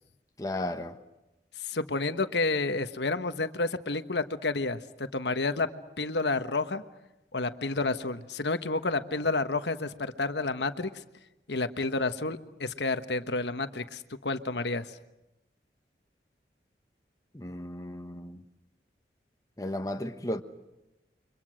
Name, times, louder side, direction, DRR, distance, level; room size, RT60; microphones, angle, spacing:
voice 1, 0.4-1.0 17.3-18.4 19.6-20.4, left 1 dB, 20° left, 1.2 m, -34 dB
voice 2, 1.6-5.7 6.0-6.8 7.3-10.9 11.5-14.9, left 3 dB, 75° left, 1.3 m, -30 dB
29.5 x 24.5 x 6.4 m
head